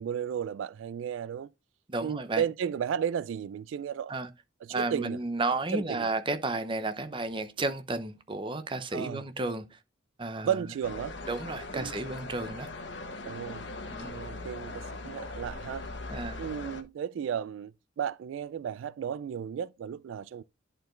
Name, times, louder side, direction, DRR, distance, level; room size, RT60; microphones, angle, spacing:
voice 1, 0.0-1.5 2.0-4.1 4.6-5.2 5.7-6.1 8.9-9.5 10.4-11.2 11.7-11.9 13.2-13.7 14.1-15.9 16.4-20.4, right 8 dB, 80° right, 0.3 m, -34 dB
voice 2, 1.9-2.4 4.1-4.3 4.7-9.8 10.2-10.6 11.3-12.7 13.9-14.2 16.1-16.4, right 2 dB, 25° right, 0.7 m, -32 dB
sound 1, 10.8-16.8, left 2 dB, 65° left, 1.1 m, -40 dB
10.5 x 4.5 x 3.1 m
head